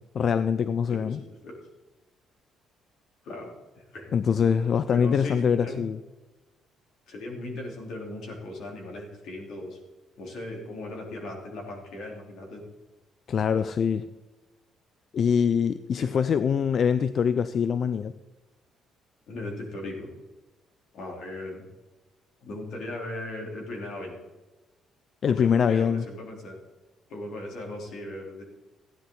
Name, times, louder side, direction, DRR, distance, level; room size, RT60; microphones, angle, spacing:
voice 1, 0.1-1.2 4.1-6.0 13.3-14.1 15.1-18.1 25.2-26.1, left 7 dB, 40° left, 13 dB, 0.4 m, -24 dB
voice 2, 0.9-1.6 3.2-4.1 4.9-5.9 7.1-9.8 10.2-12.6 16.0-16.2 19.3-20.1 20.9-21.6 22.4-24.2 25.3-26.6 27.1-28.4, left 2 dB, 65° left, 0 dB, 3.4 m, -38 dB
15.0 x 10.0 x 3.9 m, 1.1 s
cardioid pair, 170°, 0 cm